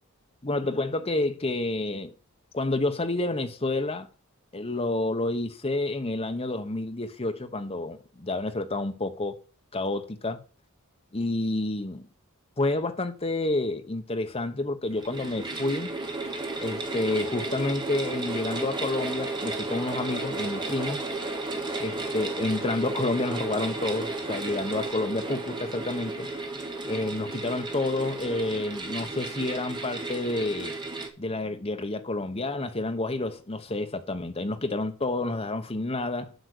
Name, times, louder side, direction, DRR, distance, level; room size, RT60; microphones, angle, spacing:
voice 1, 0.4-2.1 2.5-4.1 4.5-9.4 9.7-10.4 11.1-12.1 12.6-15.9 16.6-21.0 21.8-26.3 26.9-30.7 31.2-36.3, left 2 dB, 25° left, 1.0 m, -29 dB
sound 1, 14.9-31.1, right 2 dB, 20° right, 1.6 m, -33 dB
8.1 x 5.8 x 6.6 m
head